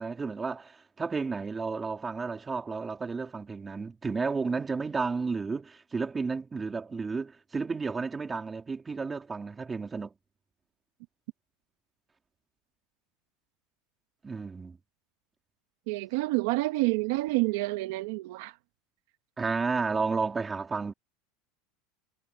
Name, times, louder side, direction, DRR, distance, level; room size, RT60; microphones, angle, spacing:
voice 1, 0.0-10.1 14.2-14.8 19.4-20.9, right 4 dB, 15° right, 2.9 m, -32 dB
voice 2, 15.9-18.6, right 22 dB, 70° right, 1.0 m, -28 dB
supercardioid pair, 150°, 0 cm